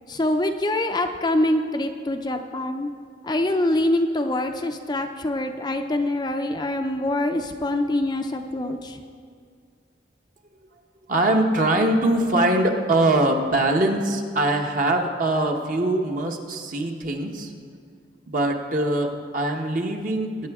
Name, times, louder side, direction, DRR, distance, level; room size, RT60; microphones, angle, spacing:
voice 1, 0.1-2.9 3.2-9.0, left 1 dB, 20° left, 5 dB, 0.5 m, -24 dB
voice 2, 11.1-17.5 18.3-20.5, right 1 dB, 45° right, 2 dB, 1.1 m, -22 dB
20.5 x 9.8 x 3.6 m, 2.1 s
head